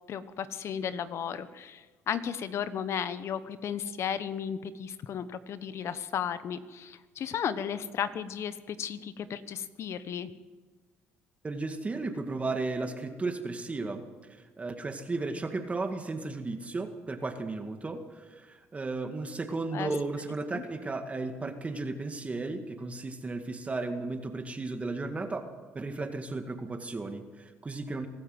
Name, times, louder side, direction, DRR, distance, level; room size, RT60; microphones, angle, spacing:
voice 1, 0.1-10.3 19.7-19.9 20.5-20.6, left 8 dB, 60° left, 13 dB, 1.1 m, -34 dB
voice 2, 11.4-25.4 25.7-28.1, right 3 dB, 25° right, 6 dB, 2.1 m, -34 dB
25.0 x 13.0 x 8.0 m, 1.3 s
supercardioid pair, 80°, 5 cm